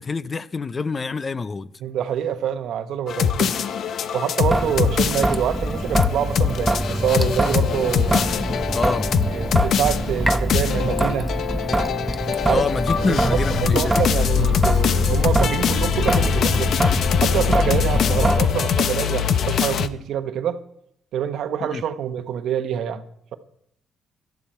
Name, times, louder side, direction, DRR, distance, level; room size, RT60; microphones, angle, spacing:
voice 1, 0.0-1.7 8.7-9.1 12.5-14.0 21.7-21.8, left 4 dB, 35° left, 0.6 m, -26 dB
voice 2, 1.8-3.6 4.1-8.1 9.3-11.3 12.5-12.6 13.0-16.7 17.2-20.6 21.1-23.0, right 9 dB, 75° right, 1.0 m, -26 dB
sound 1, 3.1-19.9, left 8 dB, 65° left, 0.7 m, -23 dB
Traffic noise roadway noise / Drip / Trickle dribble, 4.4-18.4, right 1 dB, 15° right, 0.9 m, -24 dB
17.5 x 12.0 x 4.4 m
cardioid pair, 90°, 0 cm